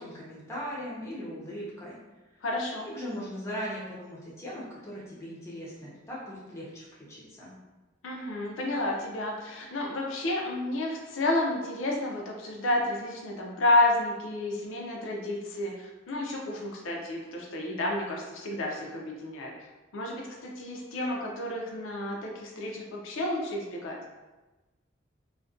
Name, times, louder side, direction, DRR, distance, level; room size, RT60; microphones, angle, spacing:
voice 1, 0.0-2.0 2.9-7.5, equal, 15° left, -6 dB, 0.5 m, -39 dB
voice 2, 2.4-2.9 8.0-19.5 19.9-24.0, left 2 dB, 75° left, -1 dB, 0.4 m, -30 dB
2.4 x 2.1 x 2.4 m, 1.1 s
head